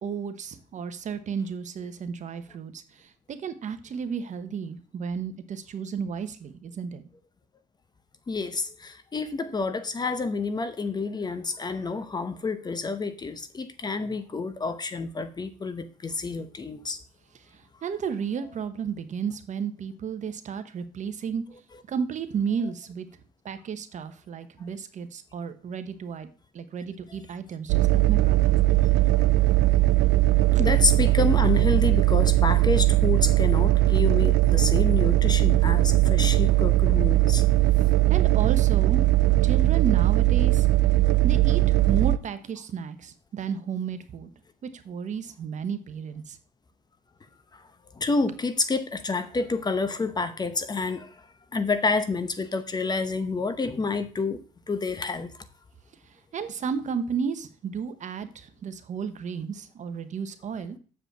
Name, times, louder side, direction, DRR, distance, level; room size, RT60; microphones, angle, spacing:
voice 1, 0.0-7.0 17.8-21.4 21.9-23.1 23.4-26.3 26.5-28.6 38.1-39.0 39.4-40.7 41.2-44.3 44.6-46.4 56.3-60.8, right 6 dB, 45° right, 1.1 m, -33 dB
voice 2, 8.3-17.0 30.6-37.4 47.5-47.6 48.0-51.1 51.5-54.4 54.7-55.3, left 4 dB, 25° left, 0.9 m, -28 dB
sound 1, 27.7-42.2, right 16 dB, 85° right, 0.5 m, -20 dB
7.6 x 4.9 x 6.8 m
cardioid pair, 110°, 17 cm